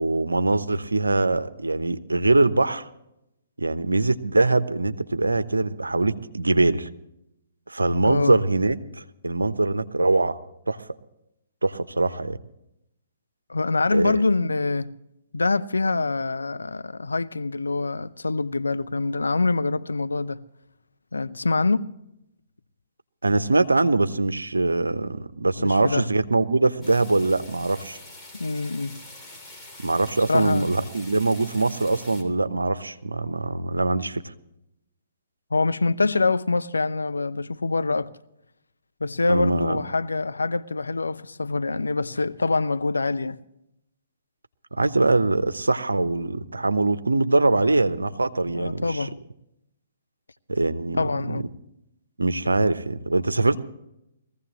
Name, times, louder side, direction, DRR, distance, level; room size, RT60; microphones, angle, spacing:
voice 1, 0.0-2.9 3.6-6.9 7.7-10.4 10.7-10.8 11.6-12.4 13.9-14.2 23.2-28.0 29.8-34.2 39.3-39.8 44.7-49.0 50.5-51.0 51.3-51.4 52.2-53.6, right 2 dB, 85° right, 0.8 m, -23 dB
voice 2, 8.0-8.3 13.5-14.9 15.3-20.4 21.1-21.9 25.6-26.1 28.4-29.0 30.3-30.7 35.5-38.1 39.0-43.4 48.5-49.2 50.9-51.5, left 3 dB, 85° left, 0.6 m, -25 dB
sound 1, 26.8-32.2, left 2 dB, 10° left, 3.1 m, -45 dB
21.5 x 15.5 x 3.0 m
figure-of-eight pair, 130°, 0 cm